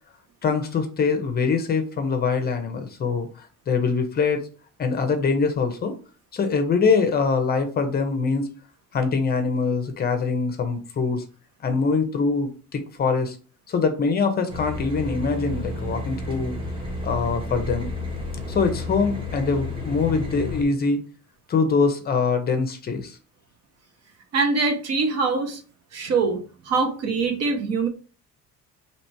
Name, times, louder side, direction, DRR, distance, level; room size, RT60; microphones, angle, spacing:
voice 1, 0.4-4.5 4.8-6.0 6.3-8.5 8.9-11.2 11.6-13.4 13.7-16.5 17.0-17.9 18.5-21.0 21.5-23.2, left 4 dB, 35° left, 7 dB, 0.6 m, -23 dB
sound 1, 14.5-20.6, left 2 dB, 15° right, 0.9 m, -31 dB
voice 2, 24.3-25.6 25.9-27.9, right 4 dB, 60° right, 5 dB, 0.9 m, -23 dB
2.9 x 2.8 x 4.4 m, 0.36 s
cardioid pair, 170°, 29 cm